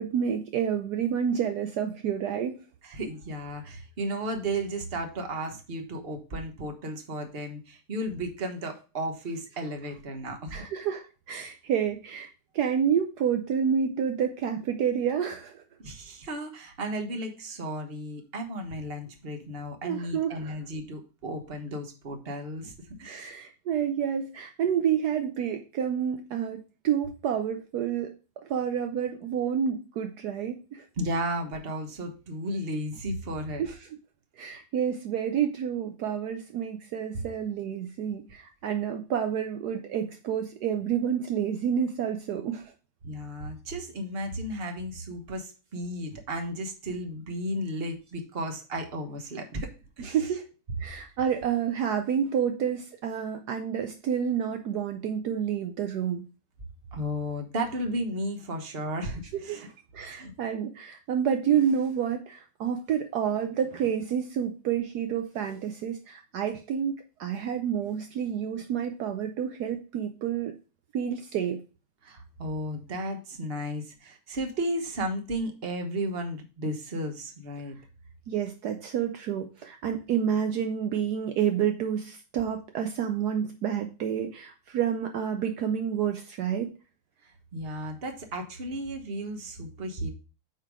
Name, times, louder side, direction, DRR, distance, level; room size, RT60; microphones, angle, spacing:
voice 1, 0.0-2.6 10.5-15.6 19.8-20.5 23.0-28.1 28.4-30.8 33.6-33.8 34.4-42.7 50.0-50.5 50.8-56.2 59.3-59.7 59.9-70.5 70.9-71.6 78.3-86.7, right 8 dB, 70° right, 5 dB, 1.2 m, -29 dB
voice 2, 2.8-10.6 15.8-22.7 23.0-23.4 31.0-33.6 43.0-49.7 50.0-50.2 56.9-59.7 60.1-60.3 72.0-77.8 87.2-90.1, right 1 dB, 35° right, 4 dB, 1.4 m, -34 dB
9.0 x 3.7 x 4.8 m, 0.33 s
omnidirectional pair, 1.9 m